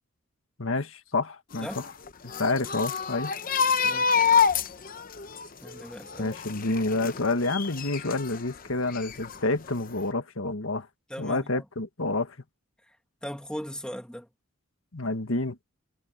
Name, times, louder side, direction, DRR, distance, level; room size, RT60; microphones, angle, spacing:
voice 1, 0.6-1.8 2.4-3.3 6.2-10.9 11.2-12.4 14.9-15.6, left 2 dB, 75° left, 1.7 m, -28 dB
sound 1, 1.5-8.4 8.8-9.7 10.0-10.1, left 6 dB, 40° left, 0.8 m, -27 dB
voice 2, 3.8-4.3 5.6-6.3 11.1-11.7 12.9-13.0 13.2-14.3, equal, 5° left, 2.2 m, -38 dB
head